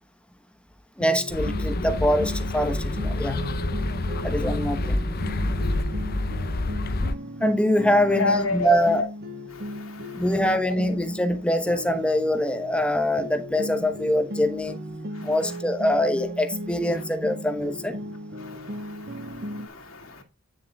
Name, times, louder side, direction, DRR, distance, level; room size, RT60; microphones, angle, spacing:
voice 1, 1.0-3.4 4.2-5.0 7.4-9.1 10.1-14.8 15.2-17.9, equal, 5° left, 1.0 m, -24 dB
sound 1, 1.0-12.8 13.2-19.7, equal, 50° right, 1.6 m, -36 dB
sound 2, 1.3-7.2, left 2 dB, 45° left, 0.7 m, -27 dB
voice 2, 8.1-9.1 9.5-10.7 15.1-15.6 16.9-17.0 18.4-20.2, left 3 dB, 80° left, 2.3 m, -32 dB
9.5 x 7.1 x 2.4 m
head